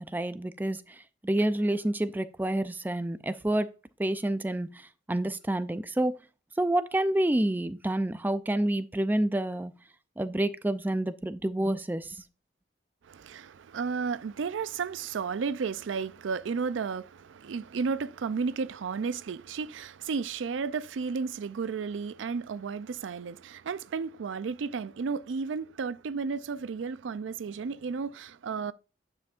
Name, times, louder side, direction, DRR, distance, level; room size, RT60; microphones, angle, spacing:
voice 1, 0.0-3.7 4.0-6.2 6.6-9.7 10.2-12.2, right 1 dB, 10° right, 0.3 m, -28 dB
voice 2, 13.1-28.7, right 5 dB, 85° right, 0.4 m, -33 dB
9.6 x 5.7 x 2.4 m
head